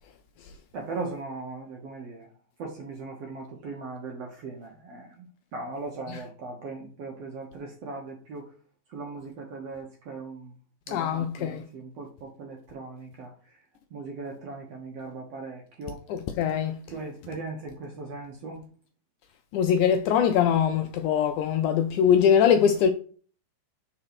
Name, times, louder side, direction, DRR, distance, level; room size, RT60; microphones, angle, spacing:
voice 1, 0.7-2.3 2.6-5.3 5.5-8.5 8.9-10.5 10.9-13.3 13.9-16.0 16.9-18.6, right 3 dB, 65° right, 1.6 m, -38 dB
voice 2, 10.9-11.6 16.1-16.8 19.5-22.9, left 8 dB, 80° left, 1.8 m, -22 dB
4.9 x 4.3 x 5.9 m
omnidirectional pair, 4.0 m